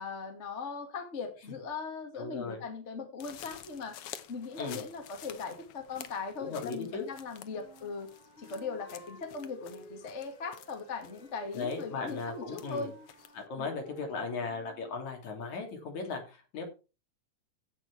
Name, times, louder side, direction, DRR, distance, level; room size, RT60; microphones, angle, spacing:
voice 1, 0.0-4.0 4.3-8.1 8.4-12.9 13.6-13.7, left 4 dB, 25° left, 4 dB, 1.8 m, -39 dB
voice 2, 2.2-2.6 4.6-4.8 6.4-7.1 11.5-12.9 13.3-16.6, left 4 dB, 60° left, 2 dB, 4.1 m, -37 dB
sound 1, 3.2-13.5, left 11 dB, 75° left, 1.4 m, -51 dB
Wind instrument woodwind instrument, 7.5-15.2, right 1 dB, ahead, 3.1 m, -55 dB
16.0 x 6.2 x 4.7 m, 0.32 s
omnidirectional pair, 3.9 m